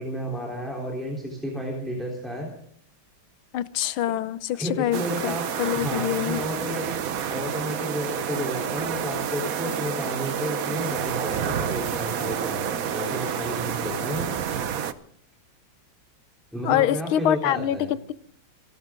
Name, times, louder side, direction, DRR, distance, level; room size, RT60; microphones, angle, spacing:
voice 1, 0.0-2.5 4.5-5.4 5.7-6.9 7.3-14.3 16.5-17.9, equal, ahead, -2 dB, 3.5 m, -32 dB
voice 2, 3.5-6.4 16.6-17.8, left 12 dB, 85° left, 16 dB, 1.6 m, -25 dB
sound 1, 4.9-14.9, right 8 dB, 55° right, 1.1 m, -29 dB
28.5 x 12.0 x 3.8 m, 0.63 s
omnidirectional pair, 2.2 m